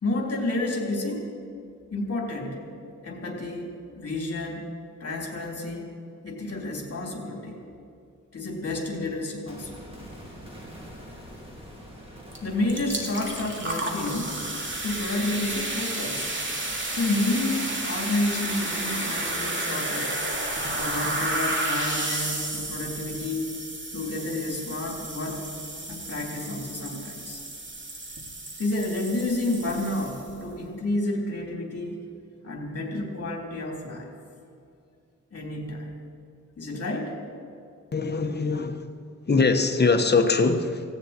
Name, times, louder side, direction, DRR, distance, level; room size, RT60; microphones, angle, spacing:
voice 1, 0.0-1.3 1.9-2.7 3.0-4.7 5.0-5.9 6.2-7.6 8.3-9.8 12.4-14.4 14.8-16.3 16.9-20.2 20.7-23.5 23.9-25.4 25.9-27.4 28.6-32.0 32.4-34.1 35.3-35.9 36.6-37.1, left 2 dB, 55° left, 0 dB, 3.4 m, -30 dB
sound 1, 9.5-19.5 19.8-19.9, equal, 20° right, 3.2 m, -46 dB
sound 2, 12.3-12.4 12.7-30.4, right 2 dB, 40° right, 2.4 m, -32 dB
voice 2, 37.9-38.9 39.3-40.8, left 4 dB, 35° left, 6 dB, 1.1 m, -22 dB
18.0 x 16.5 x 4.5 m, 2.5 s
wide cardioid pair, 130°, 30 cm